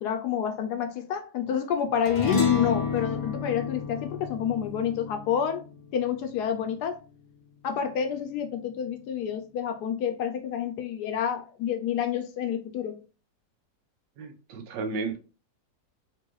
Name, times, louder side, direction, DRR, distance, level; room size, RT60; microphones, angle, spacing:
voice 1, 0.0-5.6 5.9-7.0 7.6-13.0, left 8 dB, 70° left, 1.1 m, -29 dB
sound 1, 2.0-6.7, left 6 dB, 30° left, 0.6 m, -30 dB
voice 2, 14.2-15.2, right 4 dB, 80° right, 1.4 m, -33 dB
4.6 x 2.5 x 3.1 m
omnidirectional pair, 1.9 m